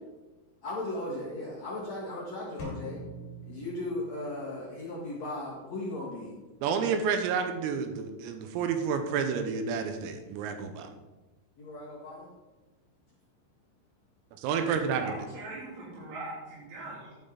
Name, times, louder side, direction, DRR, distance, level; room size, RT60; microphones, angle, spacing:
voice 1, 0.6-3.0 3.4-6.3 11.6-12.3, left 2 dB, 75° left, -6 dB, 1.5 m, -37 dB
sound 1, 2.6-4.6, right 1 dB, 40° left, 3.4 m, -43 dB
voice 2, 6.6-10.9 14.4-15.1, right 6 dB, 85° right, 7 dB, 3.6 m, -30 dB
voice 3, 15.0-17.2, right 2 dB, 70° right, -6 dB, 5.2 m, -41 dB
11.0 x 9.0 x 3.9 m, 1.1 s
omnidirectional pair, 6.0 m